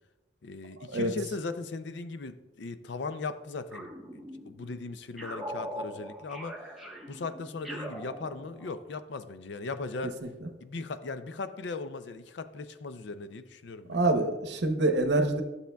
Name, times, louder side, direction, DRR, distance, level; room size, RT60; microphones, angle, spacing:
voice 1, 0.4-6.6 7.1-10.2 10.6-14.2, left 3 dB, 70° left, 11 dB, 0.5 m, -38 dB
sound 1, 3.7-4.7 5.2-8.8, equal, ahead, 1.1 m, -41 dB
voice 2, 13.9-15.4, right 2 dB, 65° right, 6 dB, 0.8 m, -25 dB
12.5 x 7.1 x 2.3 m, 1.1 s
head